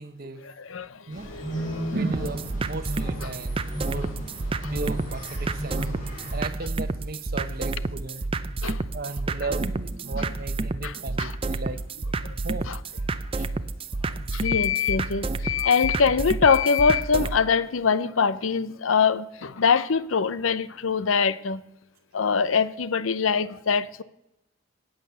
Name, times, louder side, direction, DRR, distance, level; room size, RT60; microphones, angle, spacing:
voice 1, 0.0-0.4 1.1-1.3 1.9-4.3 4.7-5.9 6.3-8.2 8.9-11.8 12.4-12.7, right 3 dB, 45° right, 0.9 m, -35 dB
voice 2, 0.6-0.9 1.3-2.0 8.6-8.8 10.8-11.3 12.7-12.8 14.3-21.6 22.1-24.0, left 6 dB, 85° left, 0.7 m, -23 dB
sound 1, 1.1-6.4, right 1 dB, 40° left, 6.9 m, -35 dB
sound 2, 2.1-17.4, right 3 dB, 25° right, 0.5 m, -30 dB
16.5 x 9.0 x 6.9 m
head